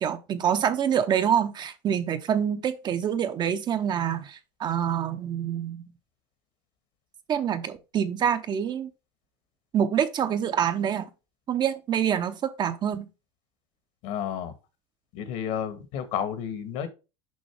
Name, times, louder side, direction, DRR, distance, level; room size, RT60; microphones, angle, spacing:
voice 1, 0.0-5.8 7.3-8.9 9.7-11.1 11.5-13.1, right 9 dB, 30° right, 0.7 m, -26 dB
voice 2, 14.0-14.5 15.1-16.9, left 9 dB, 60° left, 1.5 m, -31 dB
6.3 x 5.5 x 3.4 m
supercardioid pair, 125°, 15 cm